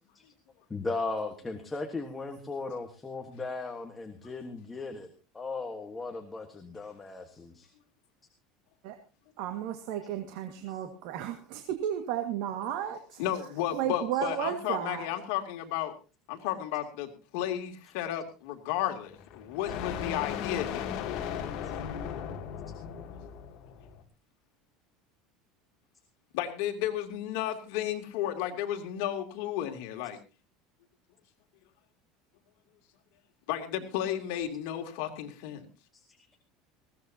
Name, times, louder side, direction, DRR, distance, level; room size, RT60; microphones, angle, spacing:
voice 1, 0.7-7.7 10.7-10.8 14.1-14.2 35.9-36.2, left 3 dB, 10° left, 5 dB, 1.4 m, -37 dB
voice 2, 9.4-13.2 13.7-15.1, right 10 dB, 60° right, 7 dB, 1.8 m, -33 dB
voice 3, 13.2-15.9 16.3-21.0 26.3-30.2 33.5-35.7, left 11 dB, 65° left, 4 dB, 2.7 m, -33 dB
sound 1, 19.0-24.0, left 8 dB, 45° left, 2.5 m, -37 dB
20.5 x 16.5 x 2.8 m, 0.31 s
cardioid pair, 170°, 0 cm